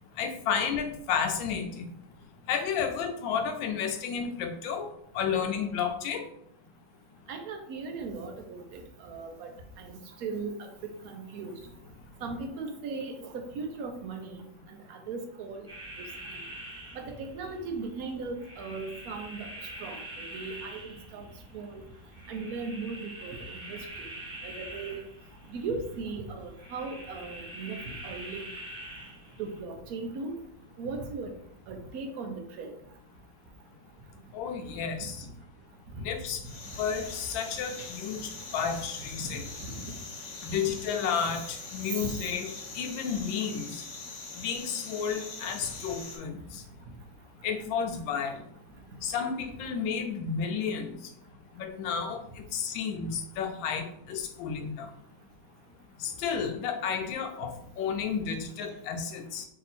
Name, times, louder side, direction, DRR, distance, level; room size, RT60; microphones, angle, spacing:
voice 1, 0.2-1.9 2.5-4.9 5.1-6.3 34.3-35.2 36.0-36.4 36.8-39.5 40.4-43.8 44.3-46.6 47.4-48.4 49.0-51.0 51.5-54.9 56.0-59.5, left 6 dB, 85° left, 5 dB, 1.4 m, -32 dB
voice 2, 7.3-9.5 9.8-10.7 11.0-11.5 12.2-15.7 16.9-19.5 19.8-21.2 21.5-21.8 22.3-24.1 24.4-25.0 25.5-28.5 29.4-30.3 30.8-31.3 31.7-32.7 38.7-38.8 39.2-39.4 39.7-40.0 40.7-40.8 41.9-42.1, right 4 dB, 65° right, 4 dB, 0.9 m, -38 dB
sound 1, 15.7-29.6, right 1 dB, 5° right, 0.6 m, -45 dB
sound 2, 36.4-46.2, left 3 dB, 55° left, 0.9 m, -43 dB
3.6 x 2.8 x 4.1 m, 0.73 s
omnidirectional pair, 2.0 m